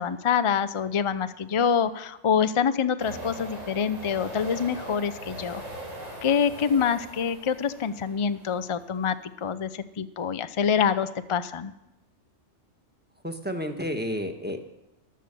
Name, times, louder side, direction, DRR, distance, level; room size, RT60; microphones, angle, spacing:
voice 1, 0.0-5.6 6.2-9.1 9.4-11.7, left 7 dB, 50° left, 12 dB, 0.3 m, -26 dB
sound 1, 3.0-8.8, right 1 dB, 90° right, 3.8 m, -40 dB
voice 2, 13.2-14.6, equal, 10° right, 5 dB, 1.2 m, -31 dB
14.0 x 11.5 x 6.8 m, 0.95 s
omnidirectional pair, 1.3 m